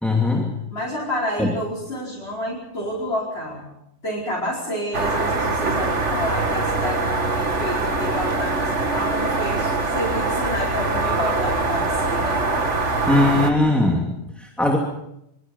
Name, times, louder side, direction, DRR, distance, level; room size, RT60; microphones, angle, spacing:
voice 1, 0.0-0.5 1.4-1.5 13.1-14.8, left 2 dB, ahead, 0 dB, 2.8 m, -20 dB
voice 2, 0.7-3.6 4.0-12.4, equal, 65° left, -5 dB, 5.5 m, -29 dB
sound 1, 4.9-13.5, right 3 dB, 90° right, 2.5 m, -23 dB
24.5 x 24.5 x 5.7 m, 0.81 s
omnidirectional pair, 1.2 m